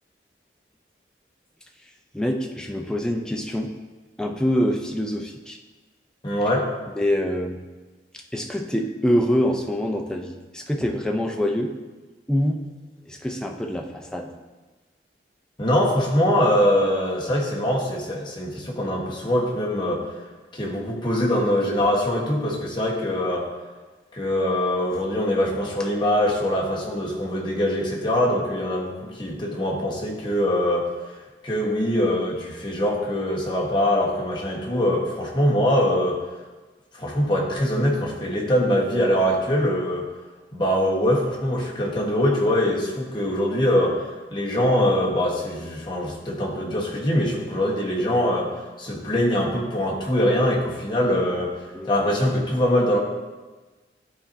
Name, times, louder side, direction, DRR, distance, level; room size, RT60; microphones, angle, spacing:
voice 1, 2.1-3.7 4.2-5.6 7.0-7.6 8.3-11.7 12.3-12.6 13.1-14.3 51.7-51.9, equal, 5° left, 2 dB, 0.4 m, -25 dB
voice 2, 6.2-6.7 15.6-20.0 20.5-23.5 24.1-30.9 31.4-36.2 36.9-40.1 40.5-44.0 44.3-48.5 48.8-53.0, equal, 25° left, -3 dB, 1.1 m, -23 dB
11.0 x 4.2 x 2.6 m, 1.3 s
head